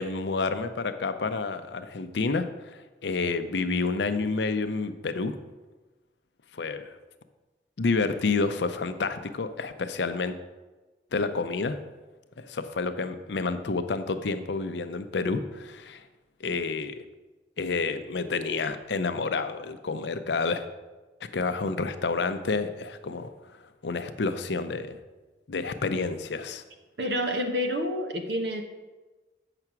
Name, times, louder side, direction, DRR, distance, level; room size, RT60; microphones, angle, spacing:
voice 1, 0.0-5.4 6.5-7.0 7.8-10.4 11.1-11.8 12.4-16.0 16.4-17.0 17.6-20.6 21.2-23.3 23.8-25.0 25.5-26.6, left 4 dB, 80° left, 10 dB, 0.6 m, -29 dB
voice 2, 27.0-28.6, equal, 75° right, 5 dB, 1.0 m, -28 dB
7.8 x 5.8 x 5.9 m, 1.2 s
head